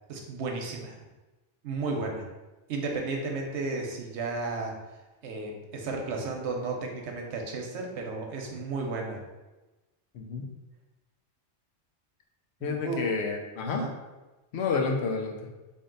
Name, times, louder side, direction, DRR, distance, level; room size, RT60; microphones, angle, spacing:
voice 1, 0.1-0.9 1.6-2.2 2.7-4.7 5.2-9.2 12.6-13.1 13.7-13.9, right 3 dB, 90° right, 1 dB, 1.0 m, -33 dB
voice 2, 10.1-10.5 12.6-13.8 14.5-15.3, left 4 dB, 75° left, 2 dB, 0.8 m, -29 dB
3.5 x 2.7 x 3.8 m, 1.1 s
omnidirectional pair, 1.1 m